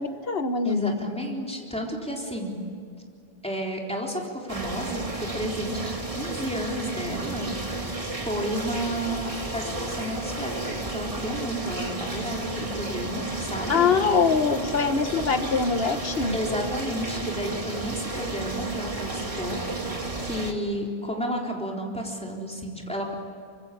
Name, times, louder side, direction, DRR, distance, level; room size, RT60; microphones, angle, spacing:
voice 1, 0.0-0.9 13.7-16.4, left 5 dB, 70° left, 9 dB, 1.5 m, -23 dB
voice 2, 0.6-2.6 3.4-7.5 8.2-13.9 16.3-19.6 20.2-23.1, equal, 5° left, -1 dB, 3.8 m, -32 dB
sound 1, 4.5-20.5, right 2 dB, 35° right, 2.2 m, -32 dB
24.5 x 24.5 x 8.6 m, 2.4 s
omnidirectional pair, 1.0 m